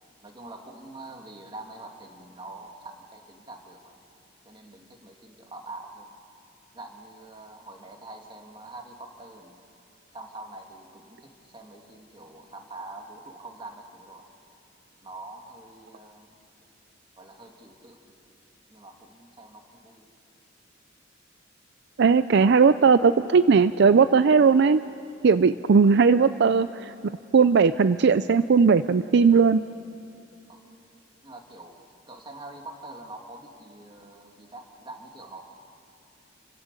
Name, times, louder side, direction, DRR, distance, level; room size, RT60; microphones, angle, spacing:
voice 1, 0.2-4.0 4.5-6.1 6.7-9.6 10.1-14.3 15.0-16.3 17.2-18.2 18.7-20.1 30.5-30.6 31.2-35.4, right 2 dB, 25° right, 2 dB, 2.2 m, -44 dB
voice 2, 22.0-24.8 25.2-29.6, right 5 dB, 60° right, 13 dB, 0.4 m, -18 dB
30.0 x 15.0 x 8.2 m, 2.9 s
head